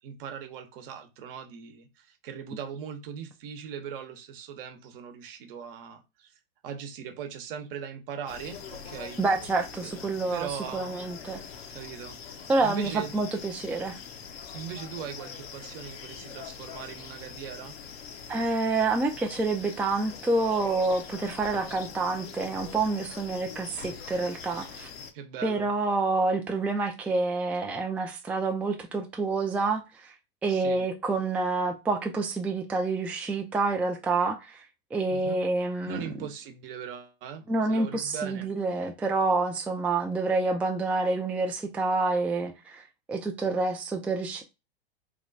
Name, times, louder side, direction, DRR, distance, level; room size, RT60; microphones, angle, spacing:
voice 1, 0.0-6.3 6.6-9.2 9.8-11.2 11.7-13.1 14.5-17.8 25.1-25.7 30.5-30.8 35.1-35.4 35.8-38.5, right 7 dB, 65° right, 0.9 m, -40 dB
sound 1, 8.3-25.1, left 7 dB, 75° left, 0.9 m, -43 dB
voice 2, 9.2-11.4 12.5-14.0 18.3-24.9 25.4-30.1 30.4-34.7 34.9-36.0 37.5-42.8 43.1-44.4, right 3 dB, 5° right, 0.3 m, -28 dB
3.2 x 2.3 x 3.9 m
hypercardioid pair, 115°, 30 cm